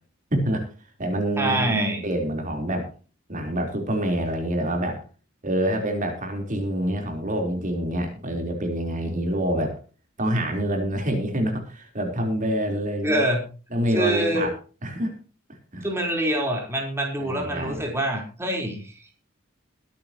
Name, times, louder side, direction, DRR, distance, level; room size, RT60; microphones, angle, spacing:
voice 1, 0.3-0.6 1.0-2.9 3.3-5.0 5.4-9.7 10.2-13.2 13.7-14.5 14.8-15.1 15.7-15.9 17.2-17.8, right 1 dB, 40° right, 3 dB, 3.9 m, -26 dB
voice 2, 1.4-2.0 13.0-13.4 13.9-14.5 15.8-19.1, right 1 dB, 15° right, 1 dB, 4.1 m, -25 dB
22.5 x 10.5 x 3.0 m, 0.36 s
head